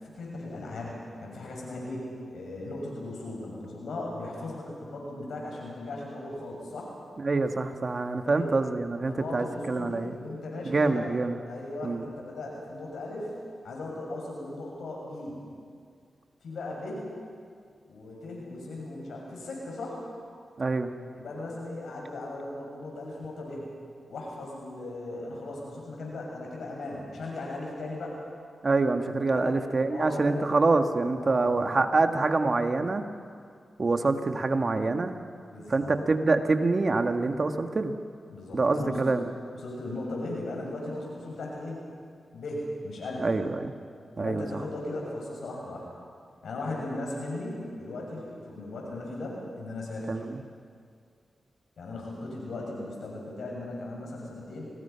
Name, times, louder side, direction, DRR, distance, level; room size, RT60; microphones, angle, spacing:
voice 1, 0.1-6.9 8.3-8.5 9.1-11.1 11.4-13.3 13.6-15.4 16.4-17.0 17.9-20.0 21.1-23.7 24.1-28.2 29.3-29.6 29.9-30.5 31.2-31.8 35.5-36.0 38.3-39.1 39.5-41.8 42.3-43.3 44.2-45.9 46.4-50.1 51.8-54.7, left 2 dB, 80° left, -2 dB, 7.0 m, -37 dB
voice 2, 7.2-10.2 10.7-11.4 11.8-12.1 20.6-20.9 28.6-33.0 33.8-35.2 35.7-37.9 38.5-39.2 43.2-43.7 44.2-44.5 50.1-50.4, right 3 dB, 50° right, 6 dB, 1.7 m, -26 dB
28.0 x 19.5 x 5.8 m, 2.2 s
cardioid pair, 50°, 0 cm